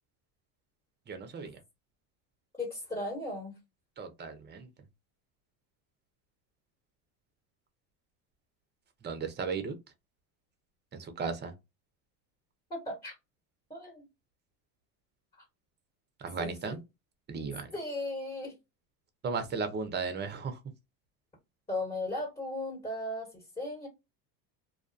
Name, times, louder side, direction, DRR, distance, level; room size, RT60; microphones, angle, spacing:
voice 1, 1.1-1.6 4.0-4.7 9.0-9.7 10.9-11.5 16.2-16.8 17.3-17.7 19.2-20.6, right 5 dB, 25° right, 0.6 m, -35 dB
voice 2, 2.6-3.5 12.7-13.1 13.7-14.0 16.4-16.8 17.7-18.5 21.7-23.9, left 1 dB, 15° left, 1.1 m, -36 dB
2.4 x 2.2 x 2.5 m
supercardioid pair, 105°, 45 cm